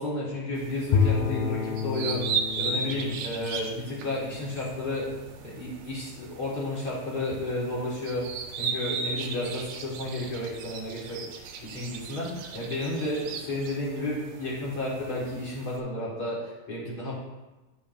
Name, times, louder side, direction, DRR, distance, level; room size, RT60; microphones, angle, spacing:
voice 1, 0.0-5.1 5.4-8.3 8.6-11.2 11.6-17.1, left 1 dB, 40° left, -6 dB, 2.0 m, -32 dB
sound 1, 0.6-15.8, right 5 dB, 75° right, 1.9 m, -37 dB
Bowed string instrument, 0.9-5.2, left 6 dB, 80° left, 1.7 m, -30 dB
10.0 x 5.3 x 2.6 m, 1.1 s
omnidirectional pair, 3.3 m